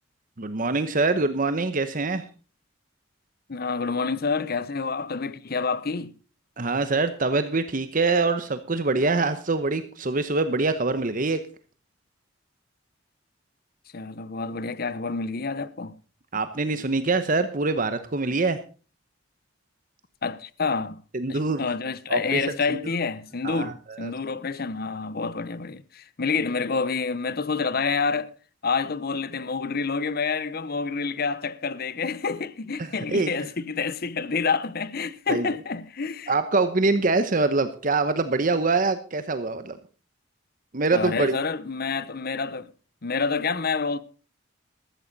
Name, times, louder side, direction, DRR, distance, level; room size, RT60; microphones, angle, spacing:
voice 1, 0.4-2.3 6.6-11.4 16.3-18.6 21.1-21.7 22.1-22.4 22.7-22.8 23.4-24.1 32.8-33.3 35.3-35.5 36.3-39.8 40.7-41.4, right 3 dB, 40° right, 0.9 m, -24 dB
voice 2, 3.5-6.1 13.9-15.9 20.2-21.0 21.3-28.3 28.6-36.3 40.9-42.7 43.0-44.0, left 4 dB, 50° left, 0.8 m, -28 dB
14.0 x 13.5 x 4.1 m
head